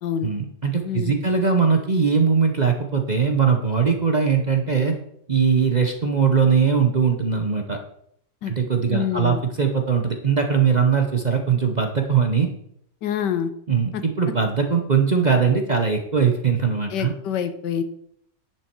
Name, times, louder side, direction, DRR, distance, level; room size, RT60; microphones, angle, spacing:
voice 1, 0.2-5.0 5.3-7.8 8.5-12.5 13.7-17.1, right 6 dB, 35° right, 4 dB, 0.8 m, -20 dB
voice 2, 0.8-1.2 8.4-8.5 8.9-9.4 13.0-13.5 13.9-14.0 16.9-17.8, left 8 dB, 85° left, 10 dB, 1.5 m, -26 dB
10.0 x 6.2 x 4.6 m, 0.70 s
omnidirectional pair, 1.8 m